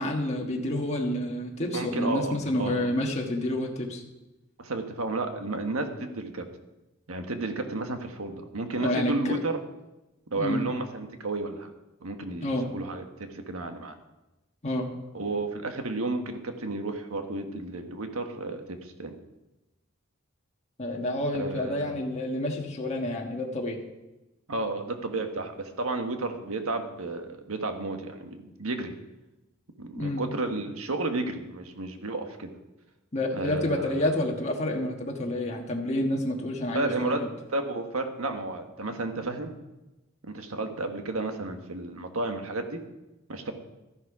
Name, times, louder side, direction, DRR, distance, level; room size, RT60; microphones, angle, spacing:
voice 1, 0.0-4.0 8.8-9.3 10.4-10.7 12.4-12.7 14.6-14.9 20.8-23.8 29.9-30.2 33.1-37.3, left 1 dB, 30° left, 0 dB, 1.5 m, -29 dB
voice 2, 1.7-2.8 4.6-6.5 7.1-9.6 10.3-11.7 12.0-14.0 15.1-19.1 21.3-21.9 24.5-29.0 29.8-32.5 33.3-34.1 36.7-37.2 37.5-39.6 40.3-42.8 43.3-43.5, right 2 dB, 85° right, 5 dB, 1.5 m, -32 dB
13.0 x 11.0 x 4.9 m, 1.0 s
head